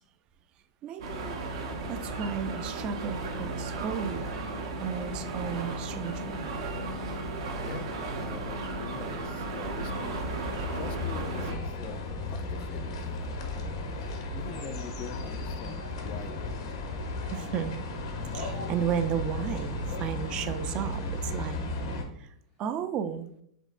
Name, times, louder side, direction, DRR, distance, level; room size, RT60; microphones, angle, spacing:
voice 1, 0.8-1.4 1.9-4.3 4.8-6.5 17.3-17.9 18.3-21.6 22.2-23.3, right 8 dB, 40° right, 10 dB, 0.4 m, -33 dB
sound 1, 1.0-11.5, right 2 dB, 70° right, 0.9 m, -35 dB
voice 2, 7.6-10.2 10.7-13.2 13.5-13.7 14.3-16.5, left 7 dB, 40° left, 10 dB, 0.4 m, -44 dB
sound 2, 9.8-22.0, left 2 dB, 75° left, 1.0 m, -35 dB
5.2 x 3.5 x 2.5 m, 0.69 s
hypercardioid pair, 120°, 3 cm